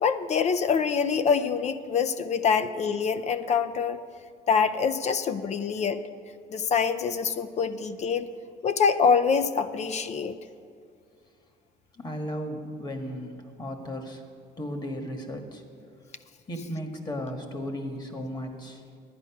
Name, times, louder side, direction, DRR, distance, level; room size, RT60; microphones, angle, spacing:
voice 1, 0.0-4.0 4.5-6.0 6.5-8.3 8.6-10.4, left 6 dB, 45° left, 12 dB, 0.5 m, -25 dB
voice 2, 11.9-14.2 14.6-15.6 16.5-18.8, equal, 25° left, 5 dB, 1.4 m, -35 dB
11.0 x 9.1 x 5.8 m, 2.2 s
cardioid pair, 110°, 17 cm